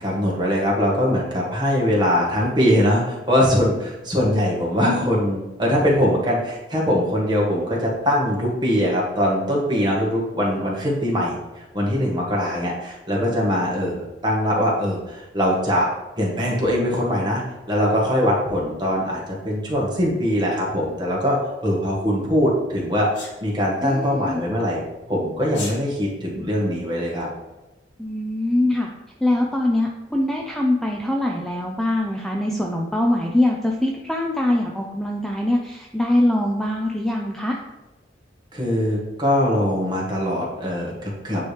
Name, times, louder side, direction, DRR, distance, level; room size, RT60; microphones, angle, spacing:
voice 1, 0.0-15.9 16.2-17.4 17.7-23.1 23.4-27.3 38.5-41.5, equal, 25° right, -3 dB, 1.4 m, -22 dB
Sneeze, 23.1-23.4 25.4-25.8, left 3 dB, 70° left, 1.5 m, -33 dB
voice 2, 23.8-24.4 28.0-28.9 29.2-37.6, left 1 dB, ahead, 0 dB, 0.4 m, -23 dB
9.1 x 3.1 x 3.3 m, 1.0 s
head